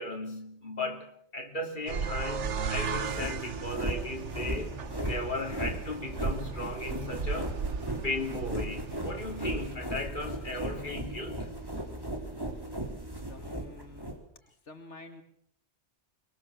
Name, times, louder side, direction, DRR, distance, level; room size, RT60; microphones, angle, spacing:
voice 1, 0.0-7.6 8.0-11.5, left 2 dB, 45° left, 2 dB, 3.5 m, -36 dB
sound 1, 1.9-9.7, right 6 dB, 90° right, 1.5 m, -36 dB
sound 2, 2.8-14.2, right 1 dB, 20° right, 3.8 m, -37 dB
voice 2, 12.2-12.7 13.0-14.2 14.5-15.2, left 2 dB, 80° left, 5 dB, 2.5 m, -50 dB
24.0 x 22.5 x 7.4 m, 0.66 s
omnidirectional pair, 1.2 m